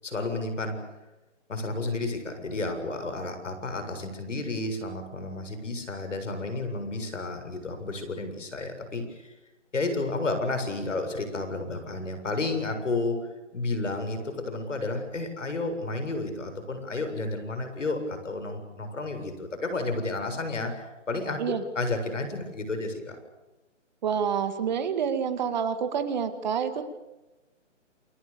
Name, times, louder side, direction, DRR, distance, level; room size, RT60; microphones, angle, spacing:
voice 1, 0.0-0.8 1.5-9.3 9.7-23.2, left 2 dB, 75° left, 8 dB, 7.5 m, -31 dB
voice 2, 24.0-26.8, right 7 dB, 35° right, 9 dB, 2.2 m, -28 dB
29.0 x 25.0 x 7.1 m, 1.0 s
hypercardioid pair, 155°, 37 cm